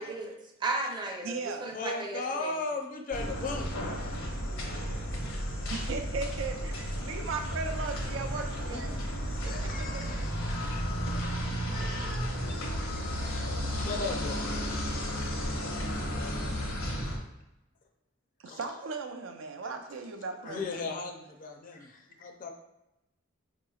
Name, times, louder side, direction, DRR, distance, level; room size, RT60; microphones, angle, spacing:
voice 1, 0.0-2.6 11.0-11.1 11.8-11.9 16.6-16.8, right 2 dB, 20° right, 1 dB, 0.6 m, -36 dB
voice 2, 1.2-1.8 4.0-4.1 4.8-5.1 5.7-10.2 11.6-11.8 13.6-13.9 18.4-20.9, right 4 dB, 70° right, 6 dB, 0.4 m, -38 dB
voice 3, 1.7-3.7 8.7-8.8 9.4-10.3 10.7-10.8 11.1-11.3 11.7-12.3 13.8-14.8 15.7-15.9 16.6-16.8 17.1-17.2 18.5-18.6 20.4-22.5, left 3 dB, 45° left, 3 dB, 0.5 m, -37 dB
sound 1, 3.1-17.2, equal, 80° left, 0.8 m, -33 dB
4.6 x 2.9 x 2.3 m, 0.93 s
head